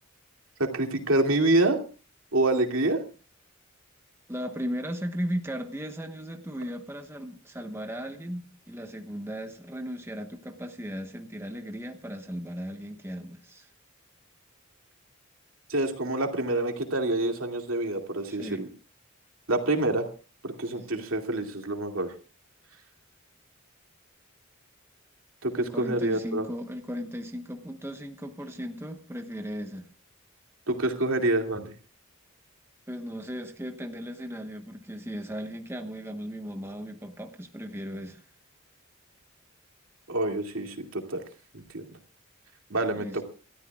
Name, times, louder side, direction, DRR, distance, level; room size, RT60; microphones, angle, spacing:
voice 1, 0.6-1.8 2.3-3.0 15.7-18.7 19.5-20.1 20.4-22.1 25.4-26.5 30.7-31.7 40.1-41.2 41.7-41.9 42.7-43.2, right 2 dB, 70° right, 4 dB, 2.5 m, -26 dB
voice 2, 4.3-13.7 18.2-18.6 25.6-29.9 32.9-38.2 42.9-43.2, equal, 10° right, 5 dB, 1.1 m, -36 dB
27.0 x 13.5 x 2.4 m, 0.35 s
head